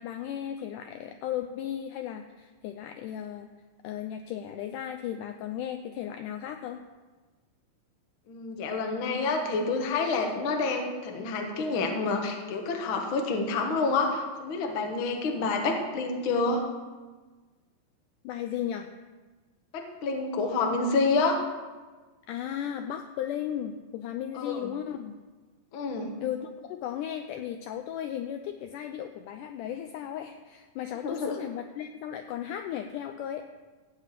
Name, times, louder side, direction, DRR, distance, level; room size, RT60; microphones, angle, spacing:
voice 1, 0.0-3.5 3.8-6.8 18.2-18.9 22.3-25.1 26.2-33.5, left 10 dB, 80° left, 6 dB, 1.9 m, -35 dB
voice 2, 8.3-16.7 19.7-21.4 24.3-24.7 25.7-26.1 31.0-31.4, left 3 dB, 55° left, 3 dB, 1.5 m, -28 dB
15.0 x 5.0 x 8.2 m, 1.3 s
omnidirectional pair, 4.1 m